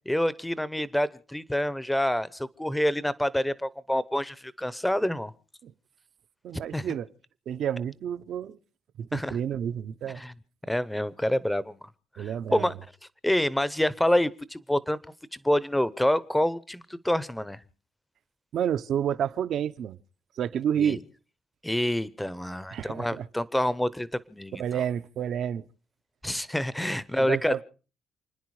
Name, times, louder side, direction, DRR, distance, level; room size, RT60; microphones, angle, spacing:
voice 1, 0.1-5.3 6.7-6.9 9.1-9.4 10.1-10.3 10.7-11.9 12.2-12.7 13.2-15.0 15.4-17.6 20.8-21.0 21.6-24.6 26.2-27.6, left 1 dB, 5° left, 0.7 m, -27 dB
voice 2, 6.4-7.1 7.5-8.6 9.0-10.2 12.2-12.7 18.5-20.0 20.4-21.0 22.7-23.3 24.6-25.6 26.3-26.4 27.2-27.6, right 9 dB, 60° right, 0.8 m, -30 dB
29.0 x 10.5 x 4.8 m
cardioid pair, 150°, 0 cm